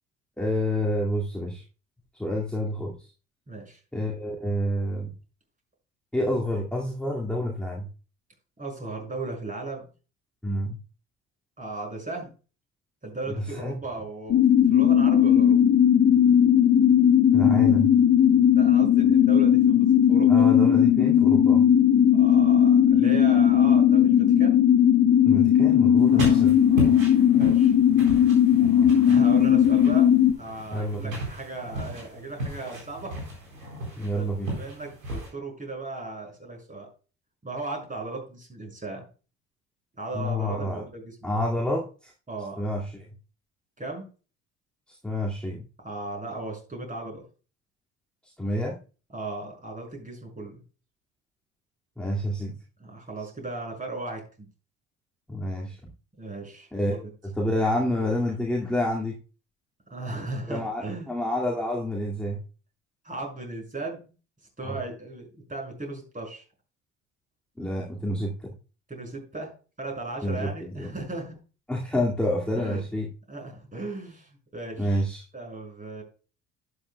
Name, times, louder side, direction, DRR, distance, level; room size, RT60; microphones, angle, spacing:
voice 1, 0.4-1.6 2.1-3.1 3.9-5.1 6.1-7.9 10.4-10.8 13.4-13.8 17.3-17.9 20.3-21.6 25.2-26.6 30.7-31.2 34.0-34.6 40.1-40.8 41.2-42.1 42.6-43.1 44.9-45.6 48.2-48.8 52.0-52.6 55.3-55.8 56.7-57.0 57.2-59.2 60.5-62.4 64.6-64.8 67.6-68.5 70.2-70.9 71.7-73.1 74.8-75.2, left 1 dB, ahead, -2 dB, 2.1 m, -28 dB
voice 2, 3.5-3.8 8.6-9.9 11.6-12.3 13.0-14.4 14.7-15.6 18.6-20.5 22.1-24.6 26.1-26.4 27.2-27.7 29.1-30.1 30.4-33.2 34.1-36.9 37.4-39.1 40.0-41.4 42.3-42.6 43.8-44.1 45.8-47.2 49.1-50.6 52.8-54.5 56.2-57.1 59.9-61.1 63.0-64.1 64.6-66.4 68.9-69.5 69.8-71.3 72.5-72.8 73.3-75.0 75.3-76.0, right 2 dB, 20° right, 1 dB, 5.8 m, -36 dB
sound 1, 14.3-30.3, left 9 dB, 45° left, 1.7 m, -18 dB
sound 2, 26.0-35.3, equal, 85° right, 4.1 m, -35 dB
11.5 x 9.8 x 2.2 m, 0.35 s
hypercardioid pair, 60°, 39 cm